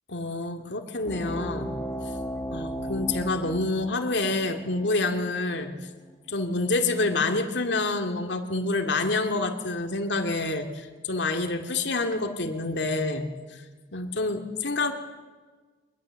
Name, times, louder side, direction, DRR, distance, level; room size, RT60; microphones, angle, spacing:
voice 1, 0.1-1.7 2.5-5.7 6.3-13.6 13.9-14.9, left 2 dB, 70° left, 5 dB, 2.3 m, -27 dB
sound 1, 1.0-6.1, equal, 15° left, 1.4 m, -36 dB
24.5 x 21.0 x 7.6 m, 1.4 s
head